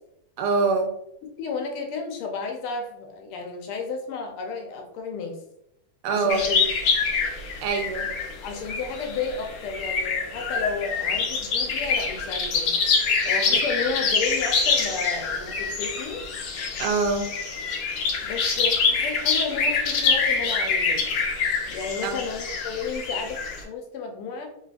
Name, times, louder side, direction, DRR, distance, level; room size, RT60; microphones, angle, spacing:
voice 1, 0.4-0.9 6.0-6.5 7.6-8.1 16.8-17.3 22.0-22.2, right 4 dB, 85° right, 6 dB, 1.5 m, -24 dB
voice 2, 1.2-5.4 6.1-6.7 8.4-12.7 13.2-16.2 18.2-21.2 21.7-24.5, left 4 dB, 85° left, 3 dB, 1.7 m, -32 dB
sound 1, 6.3-23.6, left 5 dB, 70° left, 1.3 m, -25 dB
4.1 x 3.4 x 2.4 m, 0.79 s
omnidirectional pair, 2.3 m